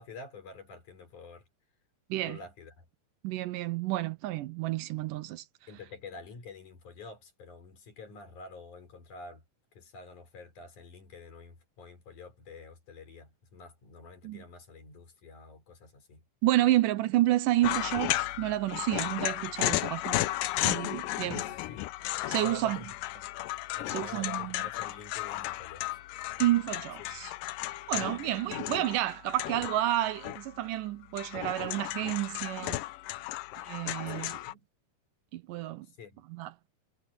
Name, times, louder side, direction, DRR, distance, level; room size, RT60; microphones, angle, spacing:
voice 1, 0.0-1.4 2.3-2.8 5.7-9.4 9.8-16.3 21.2-21.8 22.4-22.9 23.1-23.3 23.8-25.8 27.9-28.3 34.1-34.7 36.0-36.2, left 3 dB, 65° left, 5.8 m, -48 dB
voice 2, 3.2-5.4 14.2-14.4 16.4-20.2 20.6-21.4 22.3-22.8 23.9-24.7 26.4-27.3 27.9-32.8 33.6-34.3 35.3-35.9 36.3-36.5, right 15 dB, 80° right, 2.3 m, -30 dB
sound 1, 17.6-30.7 31.0-34.5, left 17 dB, 85° left, 2.4 m, -34 dB
omnidirectional pair, 3.8 m